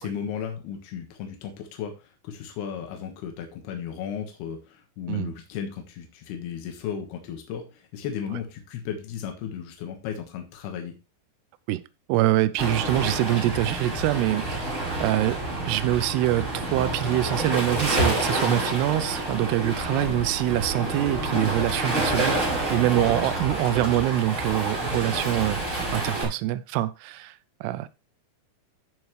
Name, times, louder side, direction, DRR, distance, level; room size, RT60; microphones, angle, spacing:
voice 1, 0.0-10.9 13.0-13.1 19.9-20.1, left 8 dB, 75° left, 3.4 m, -35 dB
voice 2, 12.1-25.6 25.9-27.9, right 15 dB, 85° right, 2.6 m, -25 dB
Waves surf, 12.6-26.2, right 1 dB, 20° right, 3.1 m, -28 dB
14.0 x 5.7 x 3.2 m
omnidirectional pair, 4.7 m